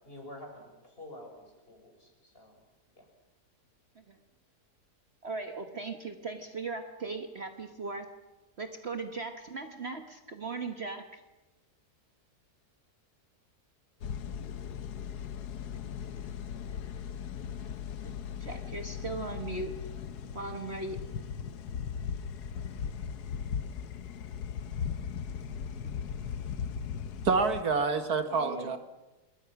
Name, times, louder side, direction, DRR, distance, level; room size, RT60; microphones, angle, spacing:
voice 1, 0.0-2.6 3.0-3.1, left 1 dB, 35° left, 2 dB, 5.6 m, -48 dB
voice 2, 5.2-8.1 8.6-11.2 18.0-19.8 20.3-21.0 28.3-28.7, right 3 dB, 45° right, 7 dB, 1.4 m, -38 dB
sound 1, 14.0-27.6, left 7 dB, 75° left, 1.5 m, -38 dB
voice 3, 27.2-28.8, right 4 dB, 70° right, 9 dB, 2.1 m, -27 dB
27.0 x 21.5 x 6.0 m, 1.1 s
omnidirectional pair, 1.7 m